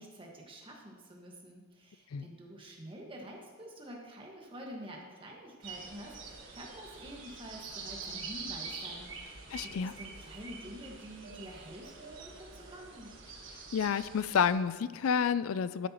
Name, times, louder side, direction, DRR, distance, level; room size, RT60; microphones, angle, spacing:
voice 1, 0.0-13.1, equal, 25° right, -1 dB, 1.7 m, -48 dB
sound 1, 5.6-14.5, right 4 dB, 65° right, 1.6 m, -45 dB
voice 2, 9.5-9.9 13.7-15.9, left 7 dB, 90° left, 15 dB, 0.4 m, -29 dB
12.0 x 10.0 x 3.0 m, 1.5 s
head